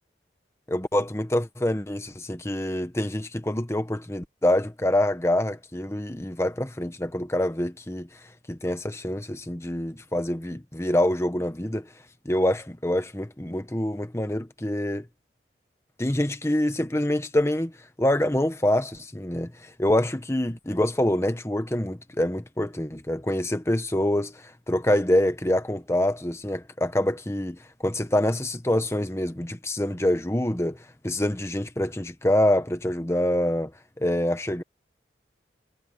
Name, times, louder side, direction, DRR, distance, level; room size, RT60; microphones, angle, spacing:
voice 1, 0.7-8.1 8.5-11.9 12.2-15.1 16.0-17.7 18.0-33.7 34.0-34.6, left 1 dB, 15° left, 1.0 m, -26 dB
head